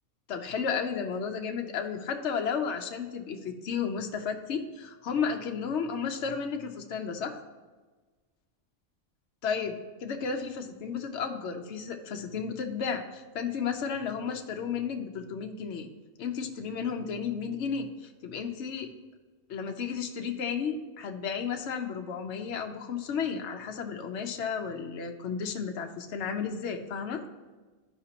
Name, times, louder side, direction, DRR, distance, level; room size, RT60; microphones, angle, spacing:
voice 1, 0.3-7.4 9.4-15.9 16.2-18.9 19.5-27.2, left 6 dB, 60° left, 4 dB, 1.0 m, -33 dB
13.5 x 5.0 x 2.9 m, 1.3 s
omnidirectional pair, 1.4 m